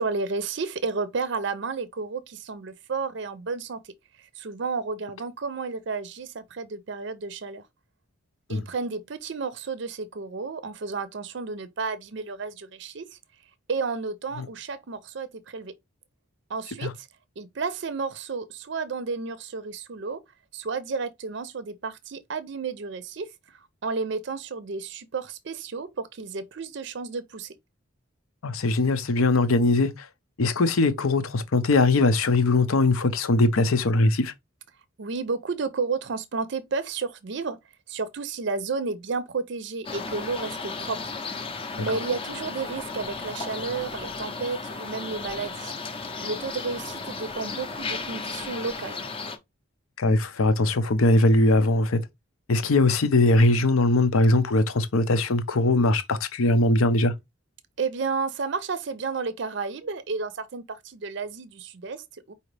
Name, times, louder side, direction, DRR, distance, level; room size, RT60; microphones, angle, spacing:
voice 1, 0.0-3.8 4.4-7.6 8.5-13.2 13.7-15.7 16.5-17.1 17.4-20.2 20.5-23.3 23.8-27.5 35.0-37.6 37.9-41.1 41.7-45.7 46.2-49.0 57.8-62.3, right 4 dB, 55° right, 0.5 m, -32 dB
voice 2, 28.4-30.1 30.4-34.3 50.0-52.0 52.5-57.1, left 2 dB, 80° left, 0.6 m, -21 dB
sound 1, 39.8-49.4, left 4 dB, 25° left, 0.5 m, -35 dB
4.9 x 2.8 x 3.2 m
head